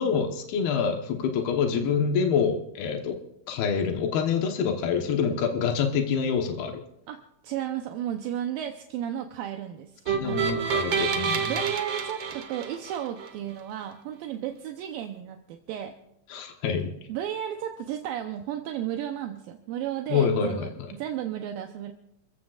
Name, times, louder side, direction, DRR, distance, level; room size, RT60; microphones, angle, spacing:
voice 1, 0.0-3.2 3.5-6.8 10.1-11.5 16.3-16.9 20.1-20.9, left 6 dB, 90° left, 4 dB, 3.1 m, -26 dB
voice 2, 7.4-9.9 10.2-11.0 11.5-15.9 17.1-21.9, right 10 dB, 75° right, 5 dB, 2.5 m, -34 dB
sound 1, 10.1-13.3, right 6 dB, 60° right, 1.6 m, -28 dB
28.0 x 15.0 x 2.4 m, 0.85 s
omnidirectional pair, 4.3 m